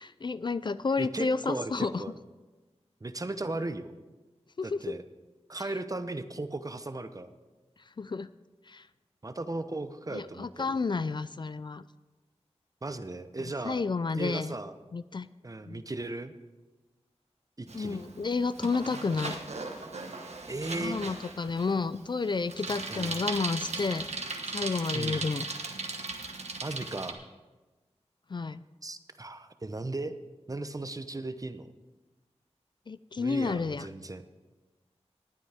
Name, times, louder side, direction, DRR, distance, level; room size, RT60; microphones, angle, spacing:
voice 1, 0.0-2.0 4.6-4.8 5.6-5.7 8.0-8.3 8.7-8.9 10.1-11.8 13.6-14.5 14.9-15.3 15.7-15.8 17.7-19.4 20.8-24.1 24.5-25.5 28.3-28.6 32.9-33.9, left 4 dB, 40° left, 15 dB, 0.3 m, -31 dB
voice 2, 1.0-2.1 3.0-3.9 4.6-5.0 5.5-7.3 9.2-10.8 12.8-13.8 14.1-14.7 15.4-16.3 17.6-18.0 20.5-21.2 22.9-23.2 23.7-23.9 24.9-25.2 26.6-27.2 28.8-30.2 30.5-31.7 33.2-34.2, right 2 dB, 30° right, 11 dB, 0.7 m, -36 dB
Bicycle, 17.7-27.1, right 3 dB, 75° right, 1.2 m, -38 dB
19.0 x 9.1 x 3.5 m, 1.2 s
wide cardioid pair, 70°, 11 cm